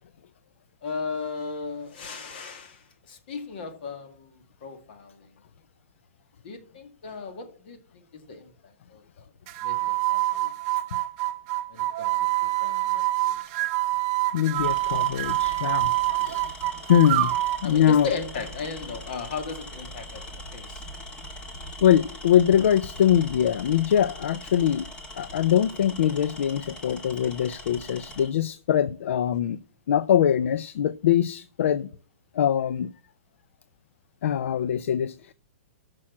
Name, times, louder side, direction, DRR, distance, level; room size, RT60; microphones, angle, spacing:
voice 1, 0.8-5.3 6.4-9.3 9.6-10.5 11.7-13.4 17.6-20.2 20.5-20.9, left 4 dB, 45° left, 2.0 m, -37 dB
sound 1, 9.5-17.7, right 17 dB, 30° right, 0.6 m, -26 dB
Tools, 13.4-13.7 14.5-28.3, left 1 dB, 15° left, 1.3 m, -41 dB
voice 2, 14.3-15.9 16.2-16.5 16.9-18.1 21.8-24.9 25.1-29.6 29.9-31.9 32.3-32.9 34.2-35.3, left 10 dB, 65° left, 0.4 m, -23 dB
8.8 x 6.2 x 7.2 m
hypercardioid pair, 170°, 7 cm